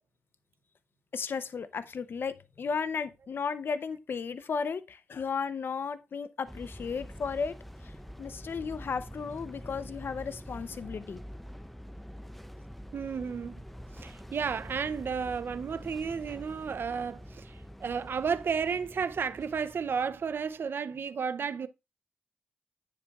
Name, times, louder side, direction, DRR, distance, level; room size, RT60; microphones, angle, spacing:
voice 1, 1.1-7.6 7.8-7.9 8.2-11.2, left 5 dB, 75° left, 0.6 m, -34 dB
sound 1, 6.5-20.7, equal, 5° left, 0.4 m, -46 dB
voice 2, 12.9-13.5 14.0-17.6 17.8-21.7, right 6 dB, 75° right, 0.5 m, -32 dB
9.6 x 8.3 x 2.3 m
wide cardioid pair, 95°, 4 cm